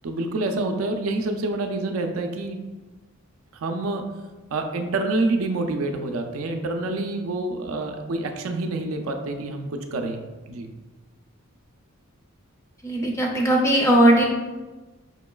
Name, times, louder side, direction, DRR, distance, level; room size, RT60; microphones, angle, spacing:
voice 1, 0.0-2.6 3.5-4.1 4.5-10.7, right 2 dB, 75° right, 5 dB, 0.4 m, -27 dB
voice 2, 12.8-14.3, right 1 dB, 15° left, 0 dB, 0.5 m, -18 dB
5.1 x 3.0 x 2.3 m, 1.2 s
head